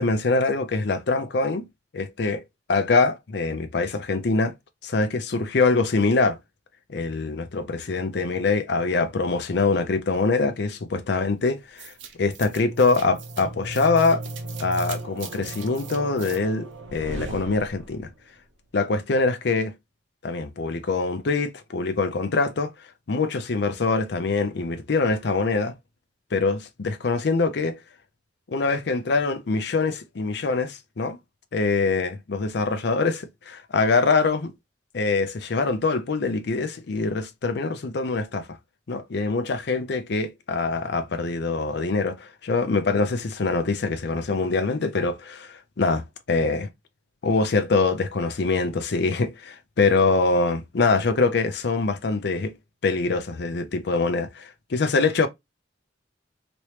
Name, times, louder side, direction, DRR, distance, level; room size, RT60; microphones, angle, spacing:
voice 1, 0.0-1.7 1.9-2.4 2.7-4.5 4.8-6.4 6.9-14.2 14.6-18.1 18.7-19.7 20.2-22.7 23.1-25.7 26.3-27.8 28.5-31.2 31.5-34.5 34.9-38.5 38.9-46.7 47.2-52.5 52.8-55.3, left 3 dB, 60° left, 0.5 m, -24 dB
sound 1, 11.8-18.1, right 2 dB, 80° right, 0.7 m, -36 dB
3.0 x 2.9 x 3.1 m
head